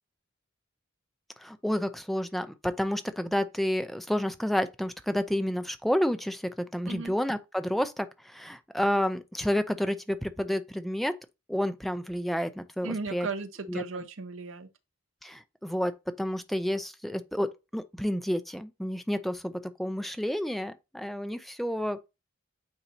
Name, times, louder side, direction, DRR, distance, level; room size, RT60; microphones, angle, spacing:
voice 1, 1.4-11.2 11.5-13.3 13.7-13.8 15.2-22.1, equal, ahead, 0.4 m, -30 dB
voice 2, 12.8-14.7, right 4 dB, 75° right, 0.8 m, -36 dB
8.8 x 4.1 x 2.8 m
head